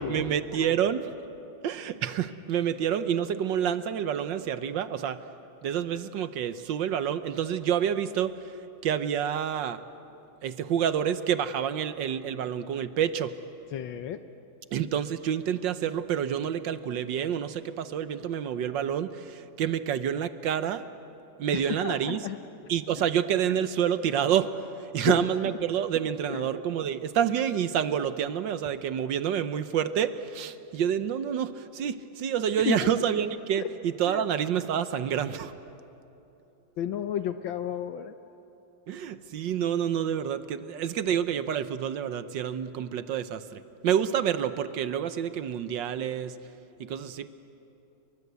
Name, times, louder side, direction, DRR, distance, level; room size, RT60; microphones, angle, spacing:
voice 1, 0.1-1.1 1.6-5.2 5.6-8.5 8.8-9.8 10.4-13.3 14.7-20.8 21.4-22.2 22.7-24.6 24.9-35.5 38.9-46.4 46.8-47.3, right 9 dB, 65° right, 12 dB, 1.4 m, -28 dB
voice 2, 13.7-14.2 21.5-22.4 23.0-23.1 25.0-25.6 26.3-26.5 32.6-32.9 33.6-33.7 34.1-34.2 36.8-38.1, left 10 dB, 70° left, 9 dB, 1.5 m, -32 dB
30.0 x 24.0 x 8.2 m, 2.9 s
omnidirectional pair, 2.3 m